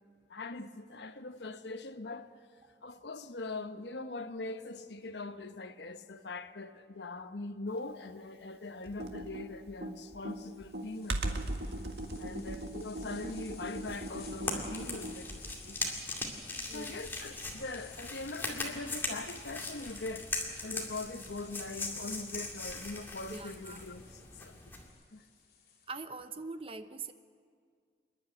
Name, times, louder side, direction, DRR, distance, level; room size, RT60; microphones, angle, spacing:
voice 1, 0.3-2.3 2.8-11.4 12.1-15.3 15.6-16.1 16.7-20.3 20.6-24.7 25.1-25.2, left 2 dB, 85° left, 1.0 m, -42 dB
Computer keyboard, 8.9-15.7, right 1 dB, 75° right, 1.6 m, -39 dB
sound 1, 10.3-25.9, left 7 dB, 55° left, 2.9 m, -56 dB
voice 2, 12.2-12.6 16.7-17.0 23.3-23.8 25.9-27.1, right 3 dB, 30° right, 0.8 m, -43 dB
sound 2, 13.9-24.9, left 2 dB, 10° left, 2.2 m, -40 dB
28.0 x 11.0 x 9.5 m
head